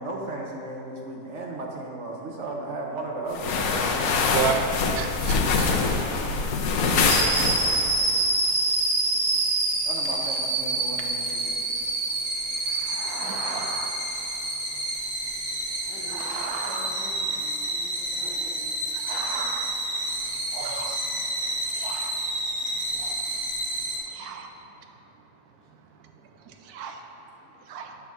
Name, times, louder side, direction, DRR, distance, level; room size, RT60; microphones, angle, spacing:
voice 1, 0.0-4.4 9.8-11.5, right 2 dB, 60° right, -1 dB, 0.9 m, -35 dB
sound 1, 3.3-8.0, left 4 dB, 70° left, 1.1 m, -24 dB
voice 2, 4.3-4.6 4.9-5.7 11.3-11.4 12.6-13.9 15.3-15.5 16.1-16.9 18.9-19.7 20.2-21.1 21.6-22.3 22.9-23.4 24.0-24.6 26.4-27.1 27.7-28.0, right 7 dB, 85° right, 5 dB, 1.1 m, -34 dB
sound 2, 7.1-24.0, right 2 dB, 35° right, 1.0 m, -28 dB
voice 3, 15.8-18.7, left 1 dB, 35° left, -6 dB, 1.0 m, -45 dB
8.4 x 3.6 x 6.0 m, 2.7 s
omnidirectional pair, 1.6 m